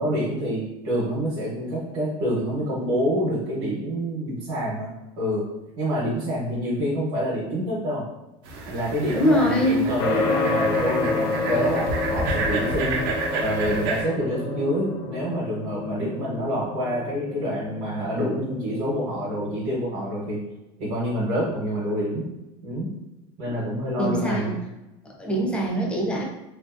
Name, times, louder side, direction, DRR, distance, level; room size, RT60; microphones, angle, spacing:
voice 1, 0.0-4.9 5.2-5.4 5.8-8.0 8.7-20.4 20.8-22.3 22.6-22.9 23.4-24.5, equal, 45° right, -6 dB, 0.9 m, -27 dB
sound 1, 8.4-14.0, right 3 dB, 70° right, 0.6 m, -30 dB
voice 2, 9.1-9.9 23.5-23.6 24.0-24.6 25.0-26.2, equal, 10° left, -1 dB, 0.4 m, -23 dB
sound 2, 10.0-19.6, left 3 dB, 65° left, 0.5 m, -29 dB
2.7 x 2.6 x 2.4 m, 0.96 s
cardioid pair, 165°, 13 cm